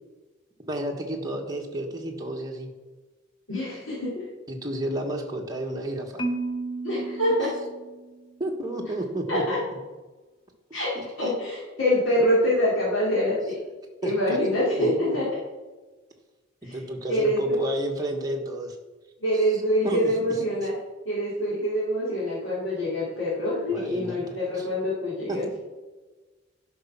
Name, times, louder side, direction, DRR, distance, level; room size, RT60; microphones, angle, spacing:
voice 1, 0.6-2.7 4.5-6.2 8.4-9.6 10.9-11.3 14.0-14.4 14.8-15.3 16.6-18.8 19.3-20.4 23.7-24.2 24.5-24.7 25.3-25.4, right 1 dB, 20° right, 0 dB, 1.4 m, -31 dB
voice 2, 3.5-4.2 6.8-7.5 9.3-9.6 10.7-10.9 11.2-13.6 14.0-15.2 16.6-16.8 17.1-17.6 19.2-20.7 21.0-25.5, equal, 65° left, -10 dB, 3.3 m, -25 dB
Marimba xylophone, 6.2-8.4, right 3 dB, 25° left, 0.9 m, -33 dB
11.5 x 5.5 x 5.8 m, 1.2 s
head